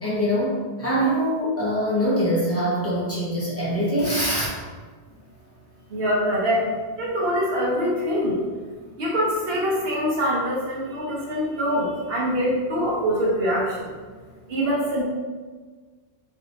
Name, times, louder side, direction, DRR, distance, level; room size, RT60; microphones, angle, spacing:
voice 1, 0.0-4.6, equal, 15° left, -8 dB, 0.9 m, -23 dB
voice 2, 5.9-6.7 7.0-8.4 9.0-13.9 14.5-15.0, equal, 65° right, -5 dB, 1.1 m, -24 dB
3.3 x 2.8 x 2.7 m, 1.4 s
omnidirectional pair, 1.1 m